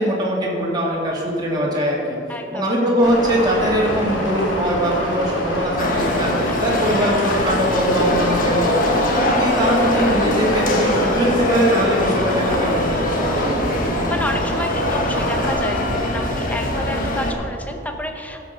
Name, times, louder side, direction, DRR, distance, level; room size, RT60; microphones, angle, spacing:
voice 1, 0.0-2.2 2.5-8.8 9.1-13.8, equal, 20° right, -4 dB, 2.2 m, -22 dB
voice 2, 2.3-2.9 6.5-6.6 9.0-9.3 14.1-18.4, left 1 dB, 10° left, 4 dB, 0.8 m, -30 dB
sound 1, 3.0-15.5, equal, 85° left, 2.2 m, -26 dB
sound 2, 5.8-17.3, left 1 dB, 45° left, 1.3 m, -22 dB
15.0 x 6.1 x 5.7 m, 2.6 s
head